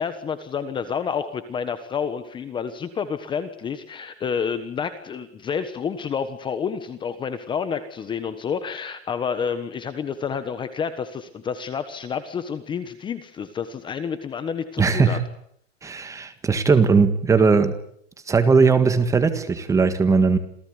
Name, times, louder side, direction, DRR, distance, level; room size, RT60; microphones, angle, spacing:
voice 1, 0.0-15.2, left 6 dB, 15° left, 11 dB, 1.3 m, -29 dB
voice 2, 14.8-15.2 15.8-17.8 18.3-20.4, right 4 dB, 10° right, 10 dB, 1.7 m, -18 dB
28.0 x 17.5 x 9.8 m, 0.67 s
supercardioid pair, 160°, 32 cm